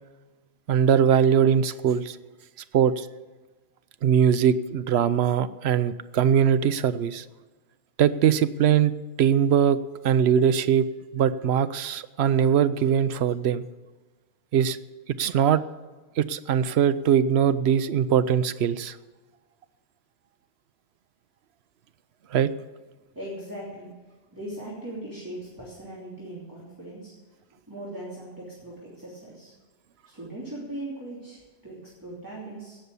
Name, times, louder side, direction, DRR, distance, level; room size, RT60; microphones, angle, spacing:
voice 1, 0.7-2.2 2.7-3.1 4.0-7.2 8.0-8.9 9.2-9.8 10.0-10.9 11.1-13.6 14.5-14.8 15.2-15.6 16.2-19.0 22.3-22.5, right 8 dB, 75° right, 14 dB, 0.9 m, -21 dB
voice 2, 23.1-27.4 27.7-29.5 30.0-32.8, right 1 dB, 20° right, -7 dB, 3.1 m, -39 dB
16.5 x 6.9 x 8.2 m, 1.3 s
omnidirectional pair, 1.1 m